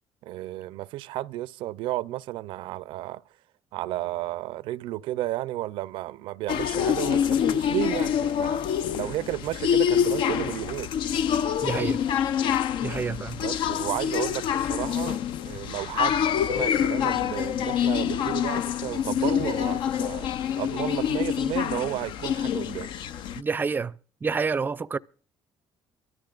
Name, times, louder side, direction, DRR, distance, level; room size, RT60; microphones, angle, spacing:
voice 1, 0.2-3.2 3.7-10.9 13.4-15.2 15.5-20.3 20.6-22.9, right 15 dB, 85° right, 0.5 m, -33 dB
sound 1, 6.5-23.4, left 9 dB, 70° left, 0.6 m, -26 dB
voice 2, 11.6-12.0 12.8-13.4 23.4-23.9 24.2-25.0, right 5 dB, 20° right, 0.5 m, -28 dB
23.0 x 13.5 x 2.4 m
cardioid pair, 120°, 9 cm